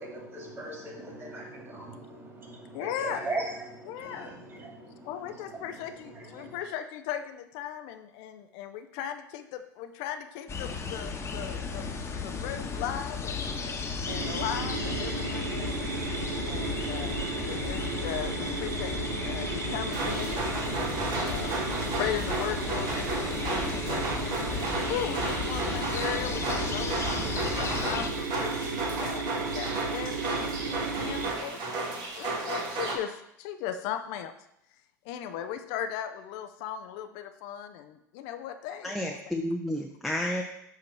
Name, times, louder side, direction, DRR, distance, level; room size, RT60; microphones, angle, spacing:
voice 1, 0.0-6.6, right 2 dB, 25° right, -1 dB, 2.5 m, -40 dB
voice 2, 2.7-3.2 3.9-4.3 5.0-11.9 12.2-15.8 16.4-19.0 19.2-24.6 24.9-34.3 35.0-39.2, left 10 dB, 60° left, 8 dB, 0.5 m, -38 dB
sound 1, 10.5-28.1, left 4 dB, 25° left, 1.1 m, -35 dB
sound 2, 14.1-31.3, right 4 dB, 85° right, 0.7 m, -34 dB
sound 3, 19.9-33.0, right 2 dB, 50° right, 1.4 m, -33 dB
voice 3, 38.8-40.4, left 1 dB, ahead, 0 dB, 0.7 m, -31 dB
7.7 x 2.9 x 5.9 m, 0.78 s
hypercardioid pair, 85°, 10 cm